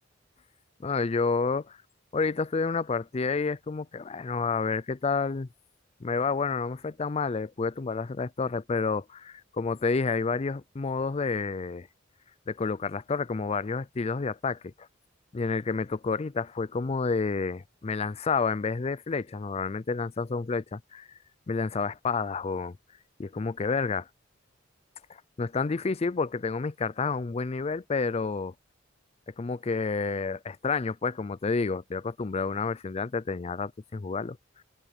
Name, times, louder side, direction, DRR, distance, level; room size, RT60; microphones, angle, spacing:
voice 1, 0.8-1.8 2.1-5.5 6.0-11.9 12.5-14.9 15.3-21.1 21.5-22.8 23.2-24.1 25.4-28.5 29.4-34.4, left 4 dB, 30° left, 0.4 m, -29 dB
head